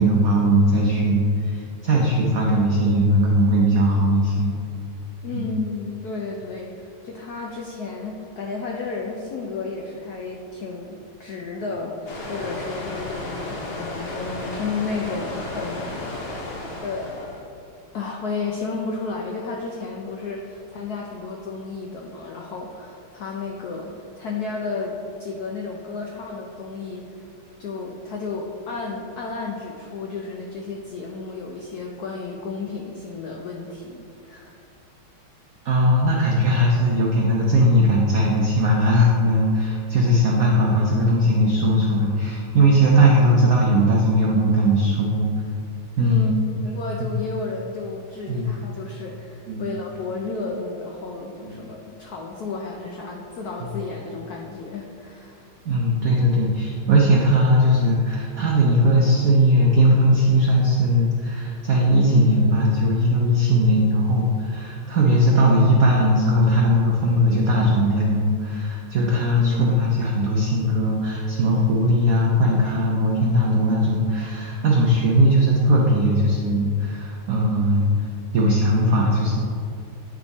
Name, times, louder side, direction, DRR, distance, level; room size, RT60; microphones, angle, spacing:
voice 1, 0.0-4.5 5.3-5.5 35.6-45.2 46.0-46.5 47.0-47.1 48.3-48.5 49.5-49.6 51.4-51.6 53.6-53.7 55.6-78.1 78.3-79.4, equal, 75° right, -2 dB, 0.7 m, -19 dB
voice 2, 5.2-16.5 16.8-17.4 17.9-23.9 24.2-27.3 27.6-34.6 46.0-55.5 69.4-69.8, left 4 dB, 80° left, -1 dB, 0.8 m, -32 dB
sound 1, 12.1-17.4, left 2 dB, 50° left, 0.7 m, -33 dB
9.0 x 3.6 x 4.0 m, 2.5 s
omnidirectional pair, 2.3 m